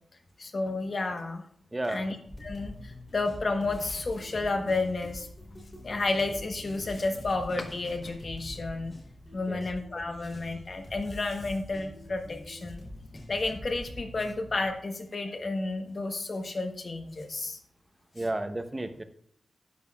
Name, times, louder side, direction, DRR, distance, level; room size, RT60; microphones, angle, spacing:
voice 1, 0.4-1.4 1.9-2.1 2.4-5.3 5.8-8.9 9.3-12.8 13.3-17.6, left 3 dB, 45° left, 5 dB, 1.1 m, -31 dB
voice 2, 1.7-2.1 9.5-9.6 18.1-19.0, right 1 dB, 20° right, 8 dB, 0.8 m, -32 dB
sound 1, 2.3-14.8, left 1 dB, 25° left, 3.2 m, -45 dB
12.0 x 9.4 x 2.4 m, 0.64 s
wide cardioid pair, 130°, 0 cm